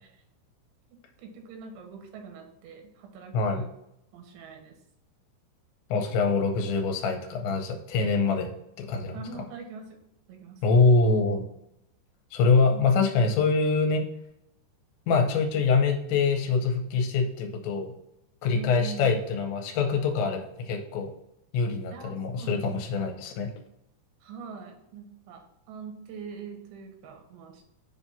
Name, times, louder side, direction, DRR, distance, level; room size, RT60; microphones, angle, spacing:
voice 1, 1.2-3.7 4.1-4.8 9.1-10.0 10.3-10.6 12.7-13.0 18.5-19.1 21.9-22.9 24.2-25.4 25.7-27.6, right 5 dB, 80° right, 3 dB, 3.3 m, -43 dB
voice 2, 3.3-3.6 5.9-8.5 8.8-9.2 10.6-11.4 12.3-14.0 15.1-17.9 18.4-21.1 21.5-23.5, left 4 dB, 90° left, 3 dB, 3.0 m, -24 dB
7.4 x 2.7 x 5.5 m, 0.81 s
omnidirectional pair, 5.2 m